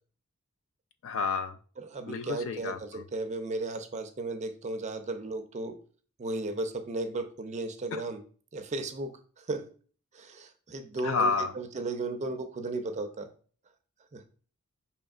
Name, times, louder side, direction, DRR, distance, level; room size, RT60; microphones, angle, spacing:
voice 1, 1.0-1.6 2.1-3.0 7.9-8.0 11.0-11.5, left 5 dB, 65° left, 10 dB, 0.4 m, -30 dB
voice 2, 1.8-5.8 6.2-8.2 8.5-9.1 9.4-9.7 10.1-13.3 14.1-14.2, right 2 dB, 30° right, 7 dB, 0.4 m, -35 dB
5.1 x 2.8 x 2.4 m, 0.42 s
head